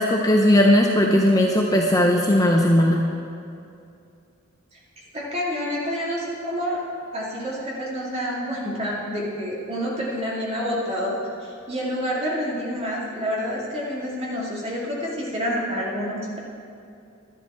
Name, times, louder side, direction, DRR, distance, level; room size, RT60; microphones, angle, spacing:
voice 1, 0.0-3.0, left 1 dB, 15° left, 0 dB, 0.6 m, -18 dB
voice 2, 5.1-6.8 7.1-16.4, equal, 30° right, -5 dB, 2.3 m, -28 dB
12.0 x 10.5 x 4.3 m, 2.5 s
head